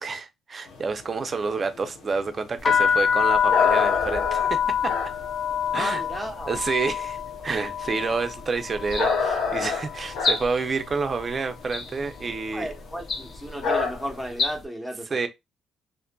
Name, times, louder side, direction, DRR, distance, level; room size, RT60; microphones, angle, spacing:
voice 1, 0.0-4.9 5.7-6.0 6.5-12.7 15.1-15.3, right 4 dB, 40° right, 0.4 m, -29 dB
sound 1, 0.7-6.7 7.2-12.5 12.8-12.9 13.2-13.4 13.6-14.2, left 4 dB, 85° left, 0.7 m, -28 dB
sound 2, 2.6-10.5 10.8-11.4 12.1-12.4 12.6-14.1, left 8 dB, 45° left, 0.4 m, -26 dB
voice 2, 5.7-6.6 12.5-15.3, equal, ahead, 0.9 m, -34 dB
sound 3, 7.9-8.1 8.8-9.4 10.2-10.8 11.7-12.3 13.0-13.5 14.3-14.5, left 3 dB, 60° left, 0.8 m, -30 dB
2.5 x 2.4 x 2.2 m
cardioid pair, 90°, 0 cm